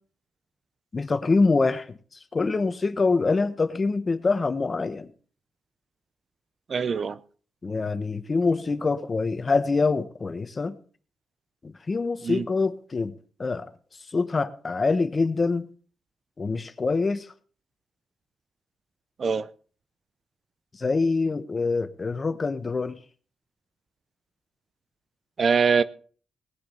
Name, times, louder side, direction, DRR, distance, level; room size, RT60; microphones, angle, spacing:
voice 1, 0.9-2.0 2.3-5.1 7.6-10.7 11.6-13.1 13.4-13.7 14.1-15.7 16.4-17.3 20.8-23.0, left 4 dB, 30° left, 1.2 m, -25 dB
voice 2, 6.7-7.2 12.2-12.5 19.2-19.5 25.4-25.8, right 5 dB, 50° right, 0.7 m, -23 dB
19.5 x 7.7 x 5.6 m
cardioid pair, 95°, 0 cm